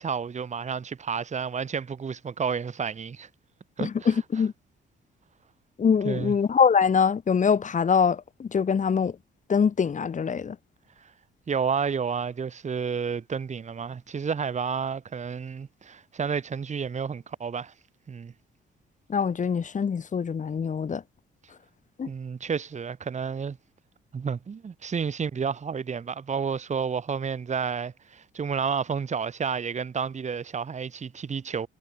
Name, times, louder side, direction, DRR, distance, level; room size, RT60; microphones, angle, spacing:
voice 1, 0.0-3.3 3.8-4.1 6.0-6.3 11.5-17.7 18.1-18.3 22.1-23.6 24.1-31.7, right 6 dB, 35° right, 1.6 m, -30 dB
voice 2, 3.8-4.5 5.8-9.2 9.5-10.6 19.1-21.0 22.0-22.1, left 6 dB, 40° left, 1.7 m, -24 dB
cardioid pair, 90°, 20 cm